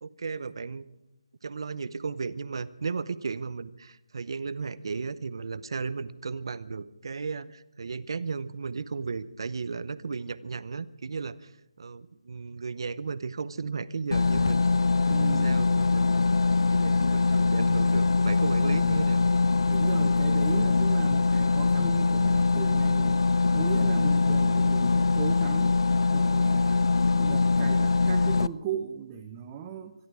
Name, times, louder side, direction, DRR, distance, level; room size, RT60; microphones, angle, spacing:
voice 1, 0.0-0.8 1.4-14.6 15.1-16.1 16.7-19.3, right 4 dB, 50° right, 16 dB, 0.7 m, -35 dB
sound 1, 14.1-28.5, left 3 dB, 55° left, 0.5 m, -23 dB
voice 2, 15.1-15.6 19.7-23.2 23.5-26.9 27.1-29.9, right 8 dB, 15° right, 3 dB, 0.7 m, -37 dB
25.0 x 11.5 x 4.8 m, 0.88 s
hypercardioid pair, 170°, 3 cm